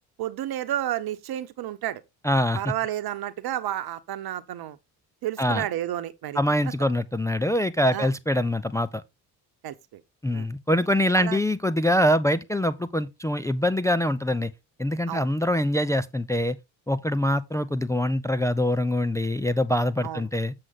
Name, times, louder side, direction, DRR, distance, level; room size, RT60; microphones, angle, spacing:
voice 1, 0.2-2.0 2.5-4.8 5.2-6.4 7.9-8.1 9.6-10.0 10.3-10.5 11.2-11.4 15.1-15.3 20.0-20.2, right 12 dB, 55° right, 1.1 m, -31 dB
voice 2, 2.2-2.6 5.4-5.7 6.3-9.0 10.2-14.5 14.8-16.6 16.9-20.5, left 1 dB, 5° left, 0.5 m, -24 dB
7.7 x 6.3 x 3.7 m
hypercardioid pair, 55°, 45 cm